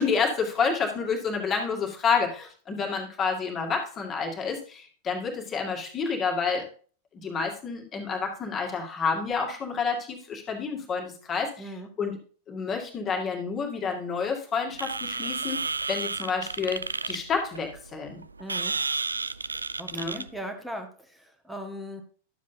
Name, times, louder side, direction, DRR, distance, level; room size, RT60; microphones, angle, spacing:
voice 1, 0.0-6.7 7.1-12.2 12.5-18.2 19.9-20.2, left 5 dB, 25° left, 1 dB, 2.1 m, -29 dB
voice 2, 11.6-11.9 18.4-18.8 19.8-22.0, equal, 5° right, 4 dB, 1.6 m, -39 dB
sound 1, 14.7-20.4, right 4 dB, 80° right, 0.3 m, -32 dB
12.0 x 7.4 x 2.8 m, 0.41 s
figure-of-eight pair, 90°, 0 cm